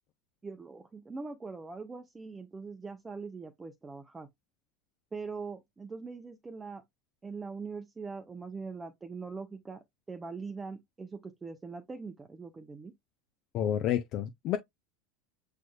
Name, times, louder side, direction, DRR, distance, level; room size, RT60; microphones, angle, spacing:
voice 1, 0.4-4.3 5.1-6.8 7.2-9.8 10.1-12.9, right 4 dB, 20° right, 0.7 m, -42 dB
voice 2, 13.5-14.6, left 10 dB, 50° left, 0.6 m, -29 dB
6.2 x 3.3 x 2.3 m
hypercardioid pair, 85°, 0 cm